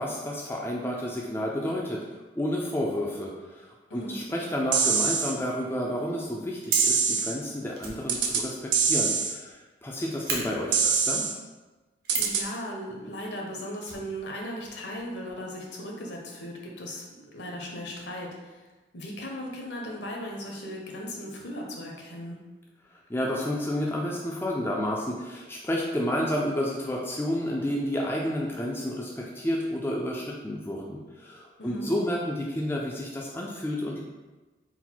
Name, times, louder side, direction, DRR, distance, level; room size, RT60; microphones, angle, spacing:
voice 1, 0.0-2.0 2.4-11.3 23.1-34.0, left 1 dB, 10° left, -3 dB, 0.3 m, -30 dB
sound 1, 4.7-5.3 6.7-7.3 8.1-8.4 8.7-9.3 10.7-11.3 12.1-12.4, right 6 dB, 75° right, 0.4 m, -24 dB
Fire, 6.2-7.0 7.7-9.5 9.8-9.9 10.2-10.4 12.0-12.4 13.8-14.7 15.0-15.1 15.3-15.4, right 4 dB, 55° right, 0.8 m, -34 dB
voice 2, 12.1-17.0 17.3-18.6 18.9-22.4 31.6-31.9, equal, 65° left, -1 dB, 0.8 m, -37 dB
3.8 x 2.1 x 4.4 m, 1.2 s
head